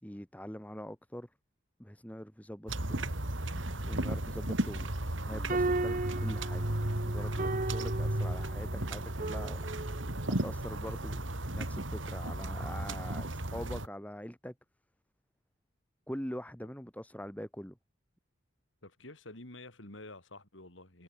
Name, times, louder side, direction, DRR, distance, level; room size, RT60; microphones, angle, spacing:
voice 1, 0.0-1.3 1.8-3.1 3.8-6.7 6.9-9.6 10.3-14.5 16.1-17.8, equal, 10° left, 5.8 m, -43 dB
sound 1, 2.7-13.9, right 1 dB, 85° right, 3.3 m, -34 dB
sound 2, 5.3-10.4, right 2 dB, 45° right, 1.2 m, -36 dB
voice 2, 18.8-21.0, left 2 dB, 80° left, 5.2 m, -49 dB
head